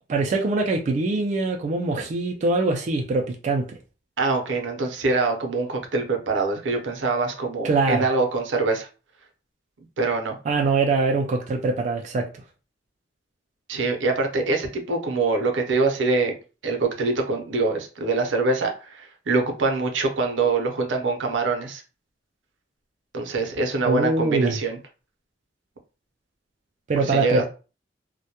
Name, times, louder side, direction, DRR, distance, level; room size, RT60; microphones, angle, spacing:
voice 1, 0.1-3.7 7.6-8.1 10.5-12.3 23.9-24.6 26.9-27.5, right 3 dB, 40° right, 0.3 m, -23 dB
voice 2, 4.2-8.9 10.0-10.4 13.7-16.3 16.6-21.8 23.1-24.8 27.0-27.5, right 3 dB, 80° right, 0.6 m, -24 dB
2.1 x 2.1 x 2.7 m
head